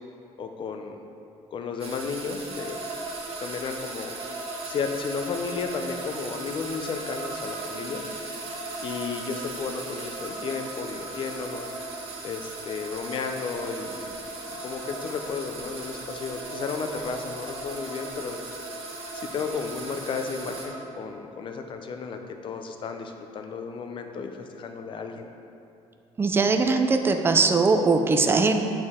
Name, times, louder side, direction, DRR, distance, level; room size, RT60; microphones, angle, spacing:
voice 1, 0.4-1.0 1.5-2.9 3.3-4.1 4.7-8.0 8.8-11.7 12.2-14.1 14.6-18.4 19.1-25.3, left 5 dB, 45° left, 5 dB, 0.5 m, -33 dB
sound 1, 1.8-20.7, right 3 dB, 50° right, 1.2 m, -40 dB
sound 2, 2.5-20.8, right 2 dB, 70° right, 1.5 m, -40 dB
voice 2, 26.2-28.5, right 4 dB, 20° right, 5 dB, 0.4 m, -21 dB
8.7 x 4.4 x 3.6 m, 2.7 s
cardioid pair, 140°, 12 cm